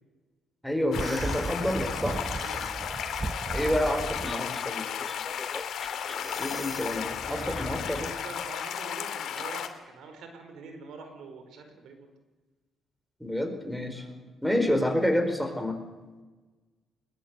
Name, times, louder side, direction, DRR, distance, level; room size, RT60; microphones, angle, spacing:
voice 1, 0.6-2.2 3.5-4.9 6.4-8.1 13.2-14.0 14.4-15.8, left 1 dB, ahead, 6 dB, 4.6 m, -28 dB
sound 1, 0.9-9.7, left 9 dB, 70° left, 2.4 m, -34 dB
sound 2, 0.9-4.4, right 3 dB, 25° right, 0.9 m, -35 dB
voice 2, 2.3-2.7 7.2-12.1 13.9-14.2, right 4 dB, 80° right, 6 dB, 4.7 m, -44 dB
sound 3, 4.2-8.2, left 2 dB, 15° left, 1.3 m, -41 dB
21.0 x 20.0 x 8.2 m, 1.2 s
cardioid pair, 90°, 0 cm